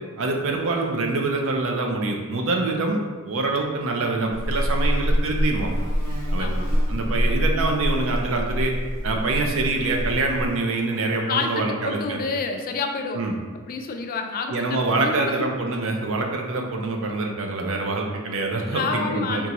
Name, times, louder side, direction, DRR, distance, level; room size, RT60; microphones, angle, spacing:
voice 1, 0.2-3.0 3.3-5.7 6.3-6.5 6.9-8.7 9.0-12.2 13.1-13.4 14.5-19.5, right 3 dB, 65° right, 2 dB, 0.5 m, -25 dB
Buzz, 4.3-10.5, equal, 90° right, 1.1 m, -25 dB
voice 2, 6.4-6.7 11.3-13.2 13.7-15.5 18.7-19.5, left 4 dB, 40° left, 4 dB, 0.3 m, -28 dB
3.6 x 2.9 x 2.9 m, 1.4 s
head